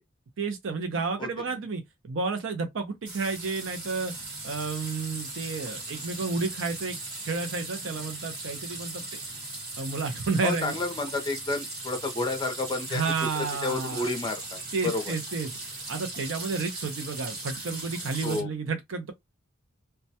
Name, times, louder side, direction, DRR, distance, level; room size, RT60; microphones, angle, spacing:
voice 1, 0.4-4.1 4.4-9.0 9.8-10.7 12.9-14.1 14.7-15.6 15.9-19.1, right 4 dB, 65° right, 0.5 m, -31 dB
sound 1, 3.0-18.4, right 2 dB, 50° right, 1.3 m, -38 dB
voice 2, 10.4-15.1 18.2-18.5, left 2 dB, 25° left, 0.5 m, -31 dB
2.2 x 2.1 x 2.7 m
head